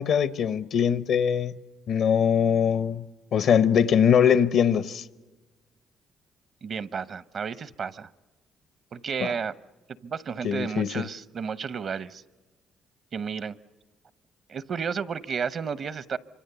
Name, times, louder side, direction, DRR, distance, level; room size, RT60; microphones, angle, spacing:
voice 1, 0.0-1.6 1.9-3.0 3.3-5.0 9.2-9.3 10.4-11.0, left 8 dB, 70° left, 0.8 m, -22 dB
voice 2, 6.6-8.1 8.9-9.5 10.0-12.2 13.1-13.6 14.5-16.2, right 6 dB, 55° right, 0.8 m, -32 dB
26.5 x 25.0 x 6.8 m
cardioid pair, 75°, 0 cm